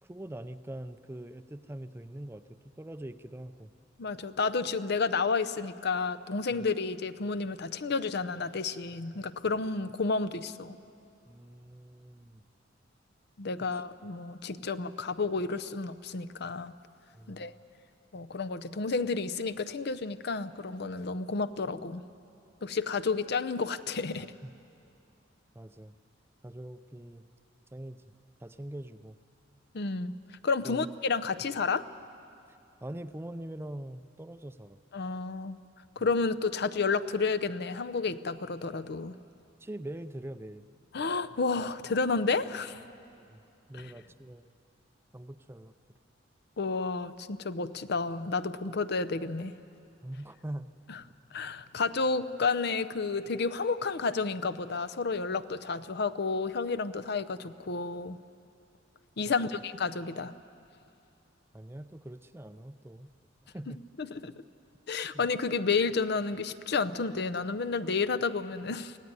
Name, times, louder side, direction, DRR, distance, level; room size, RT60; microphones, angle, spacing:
voice 1, 0.0-3.7 6.5-6.7 11.3-12.4 13.7-13.8 17.1-17.6 24.4-24.5 25.5-25.9 26.4-27.2 27.7-28.0 28.4-29.2 30.6-30.9 32.8-34.8 36.0-36.1 39.6-40.6 43.1-43.4 43.7-44.5 45.1-45.7 50.0-50.7 59.3-59.6 61.5-63.1 63.4-63.8 65.1-65.3, right 1 dB, 15° right, 11 dB, 0.5 m, -43 dB
voice 2, 4.0-10.8 13.4-16.7 17.3-17.5 18.1-22.0 22.6-24.3 29.7-30.2 30.4-31.9 34.9-35.6 36.0-39.1 40.9-42.8 43.7-43.9 46.6-49.5 51.3-58.2 59.2-60.3 63.7-64.3 64.9-69.0, left 4 dB, 60° left, 13 dB, 0.6 m, -31 dB
24.5 x 16.5 x 9.5 m, 2.6 s
head